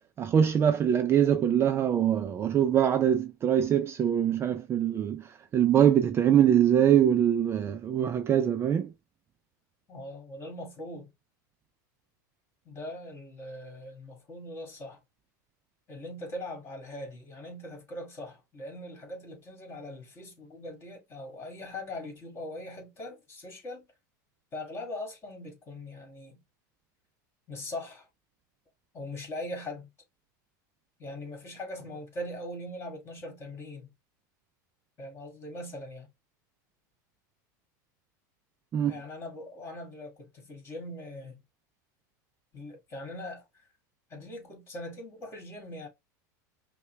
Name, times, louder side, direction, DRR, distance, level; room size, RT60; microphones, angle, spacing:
voice 1, 0.2-5.2 5.5-8.9 38.7-38.9, right 9 dB, 25° right, 0.4 m, -23 dB
voice 2, 9.9-11.1 12.6-15.0 15.9-23.9 24.5-26.4 27.5-28.1 28.9-29.9 31.0-33.9 35.0-36.1 38.9-41.4 42.5-43.5 44.1-45.9, left 1 dB, 25° left, 2.4 m, -41 dB
5.5 x 2.2 x 3.3 m
supercardioid pair, 125°, 10 cm